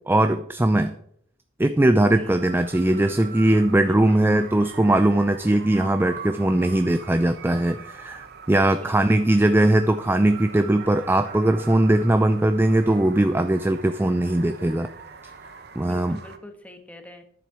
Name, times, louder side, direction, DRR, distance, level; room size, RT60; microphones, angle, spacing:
voice 1, 0.1-1.0 1.6-14.9 15.8-16.2, right 1 dB, 10° right, 9 dB, 0.4 m, -20 dB
sound 1, 2.2-16.4, right 6 dB, 55° right, 1.1 m, -42 dB
voice 2, 3.9-4.3 8.8-9.2 15.8-17.2, left 1 dB, 10° left, 5 dB, 1.3 m, -44 dB
10.0 x 7.4 x 6.0 m, 0.66 s
head